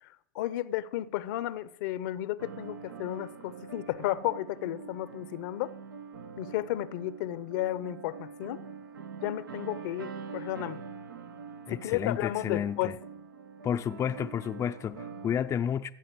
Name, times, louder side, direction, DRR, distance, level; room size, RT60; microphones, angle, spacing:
voice 1, 0.3-5.7 6.4-8.6 9.2-10.8 11.7-12.9, left 14 dB, 65° left, 0.9 m, -33 dB
sound 1, 2.4-15.4, right 5 dB, 90° right, 1.6 m, -44 dB
voice 2, 11.7-13.0 13.6-15.9, left 8 dB, 25° left, 0.6 m, -31 dB
15.0 x 7.6 x 7.8 m
hypercardioid pair, 100°, 11 cm